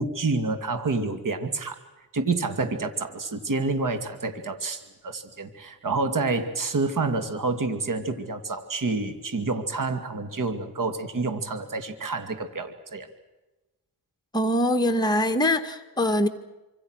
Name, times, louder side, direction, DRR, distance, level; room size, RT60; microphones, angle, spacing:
voice 1, 0.0-1.8 2.1-13.1, right 3 dB, 50° right, 9 dB, 2.6 m, -28 dB
voice 2, 14.3-16.3, left 1 dB, 10° left, 4 dB, 1.9 m, -23 dB
26.5 x 26.0 x 6.5 m, 1.1 s
cardioid pair, 80°, 41 cm